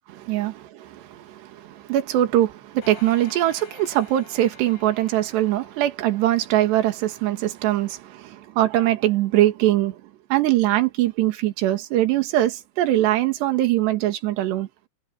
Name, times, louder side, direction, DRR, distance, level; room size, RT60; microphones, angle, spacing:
voice 1, 0.1-10.0 10.3-14.7, right 14 dB, 70° right, 3.9 m, -22 dB
sound 1, 2.8-6.5, left 6 dB, 65° left, 7.7 m, -48 dB
omnidirectional pair, 5.4 m